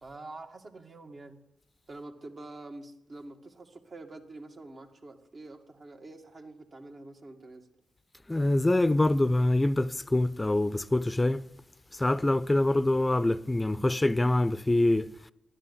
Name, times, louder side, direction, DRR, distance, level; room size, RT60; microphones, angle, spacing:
voice 1, 0.0-1.4 1.9-7.7, right 2 dB, 50° right, 2.0 m, -46 dB
voice 2, 8.3-11.4 11.9-15.1, left 1 dB, 20° left, 0.6 m, -25 dB
11.5 x 10.0 x 8.2 m
supercardioid pair, 50°, 0 cm